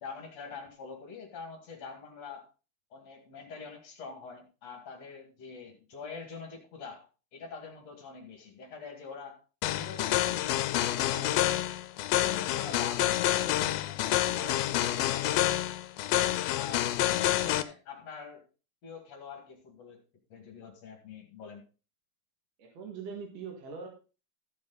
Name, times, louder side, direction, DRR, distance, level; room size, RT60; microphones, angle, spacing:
voice 1, 0.0-2.5 2.9-7.1 7.3-9.4 9.7-11.7 12.1-15.4 16.5-18.4 18.8-20.0 20.3-21.6, left 5 dB, 50° left, 3 dB, 2.8 m, -45 dB
sound 1, 9.6-17.6, left 14 dB, 85° left, 2.5 m, -28 dB
voice 2, 22.6-23.9, right 5 dB, 50° right, 1 dB, 2.7 m, -42 dB
14.5 x 7.0 x 3.9 m, 0.33 s
omnidirectional pair, 4.2 m